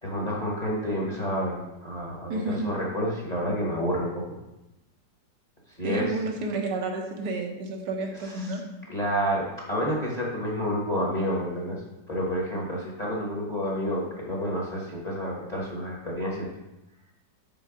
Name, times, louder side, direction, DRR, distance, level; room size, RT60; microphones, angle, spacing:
voice 1, 0.0-4.4 5.8-6.2 8.1-8.6 8.9-11.8 12.1-16.5, equal, 25° left, -3 dB, 1.2 m, -29 dB
voice 2, 2.3-2.6 5.8-8.6, right 2 dB, 65° right, 2 dB, 1.6 m, -30 dB
5.6 x 4.6 x 6.0 m, 0.97 s
omnidirectional pair, 1.9 m